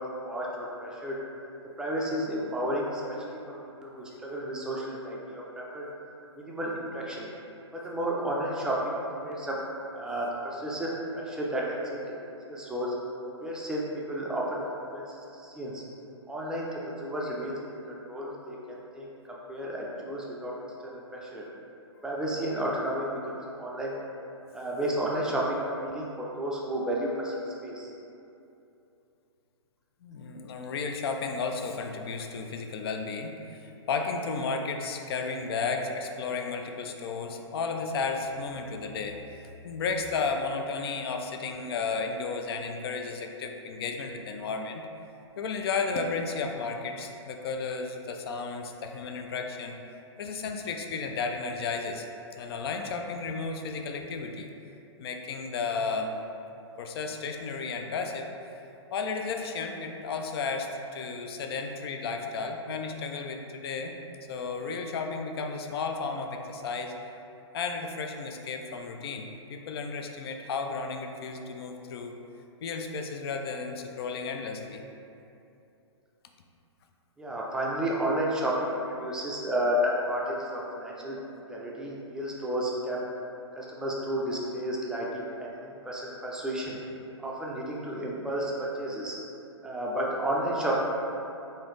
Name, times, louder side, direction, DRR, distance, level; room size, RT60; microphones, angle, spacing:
voice 1, 0.2-1.2 1.8-3.0 3.3-3.4 3.8-5.8 6.4-7.3 7.7-9.6 9.9-12.2 12.5-12.9 13.4-15.8 16.3-17.6 17.8-20.6 20.8-21.4 22.0-23.9 24.5-27.3 27.6-27.9 77.2-81.2 81.5-83.1 83.5-86.8 87.2-89.2 89.6-90.8, right 1 dB, 5° right, -4 dB, 0.4 m, -32 dB
voice 2, 30.0-44.8 45.4-49.7 50.2-52.1 52.4-54.5 55.0-56.2 56.8-58.3 58.9-63.9 64.3-66.9 67.5-72.2 72.6-74.8, left 4 dB, 55° left, 4 dB, 0.4 m, -33 dB
3.9 x 2.7 x 3.1 m, 2.8 s
figure-of-eight pair, 120°, 15 cm